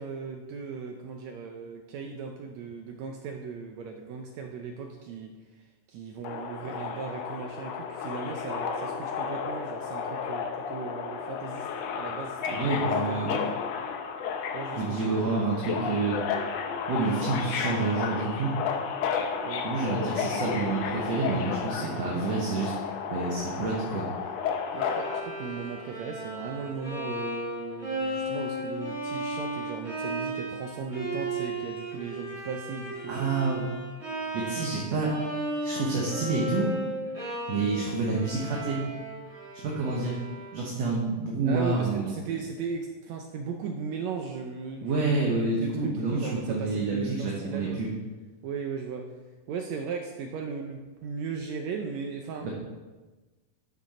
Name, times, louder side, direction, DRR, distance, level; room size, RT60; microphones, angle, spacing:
voice 1, 0.0-11.7 11.9-12.6 12.9-13.5 14.5-15.3 19.4-19.7 24.7-33.3 41.4-45.3 45.6-47.8 48.4-49.1 49.5-52.5, right 5 dB, 80° right, 3 dB, 1.6 m, -37 dB
Subway metro underground, 6.2-25.2, left 6 dB, 85° left, 1.4 m, -32 dB
voice 2, 12.5-13.3 14.7-16.2 16.9-18.6 19.6-22.7 23.1-24.1 33.1-33.7 34.3-35.2 35.6-36.7 37.5-38.8 39.6-40.2 40.5-42.1 44.8-47.9 52.4-52.5, right 3 dB, 60° right, -3 dB, 2.1 m, -28 dB
Bowed string instrument, 24.7-40.8, right 1 dB, 20° right, 2.9 m, -35 dB
12.0 x 6.3 x 4.3 m, 1.2 s
omnidirectional pair, 4.0 m